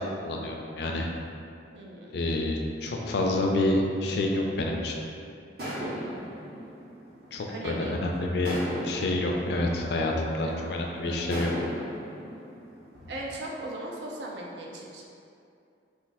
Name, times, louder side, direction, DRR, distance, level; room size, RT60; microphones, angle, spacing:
voice 1, 0.2-1.1 2.1-5.0 7.3-8.5 8.8-11.5, left 2 dB, 65° left, 0 dB, 0.4 m, -28 dB
voice 2, 1.7-2.2 7.5-8.0 10.5-11.2 13.1-15.1, right 1 dB, 70° right, -2 dB, 0.5 m, -38 dB
sound 1, 5.6-7.8 8.4-10.6 11.3-13.6, equal, 55° right, 0.9 m, -37 dB
2.5 x 2.4 x 3.9 m, 2.5 s
head